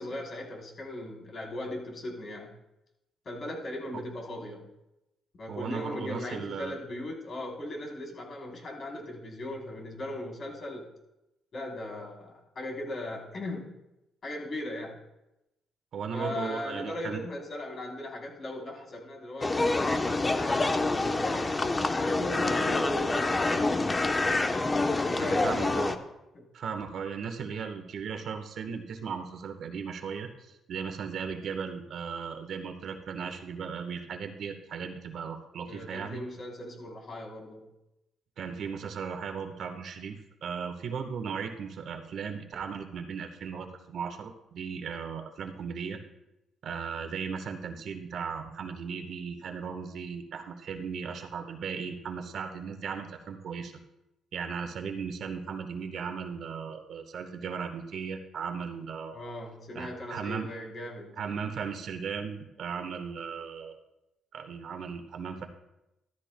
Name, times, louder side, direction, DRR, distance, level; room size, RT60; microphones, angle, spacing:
voice 1, 0.0-2.5 3.2-4.7 5.3-10.9 11.5-13.7 14.2-15.0 16.1-21.6 21.9-24.0 25.0-25.8 26.3-26.5 35.6-37.7 59.1-61.2, left 1 dB, 50° left, -1 dB, 3.6 m, -38 dB
voice 2, 5.5-6.8 15.9-17.2 25.2-26.0 26.5-36.2 38.4-46.0 46.6-53.7 54.3-59.2 59.7-60.5 61.2-63.8 64.3-65.5, right 6 dB, 65° right, 5 dB, 1.3 m, -37 dB
sound 1, 19.4-26.0, left 2 dB, 25° left, 0.9 m, -27 dB
14.5 x 13.5 x 2.2 m, 0.92 s
cardioid pair, 90°, 0 cm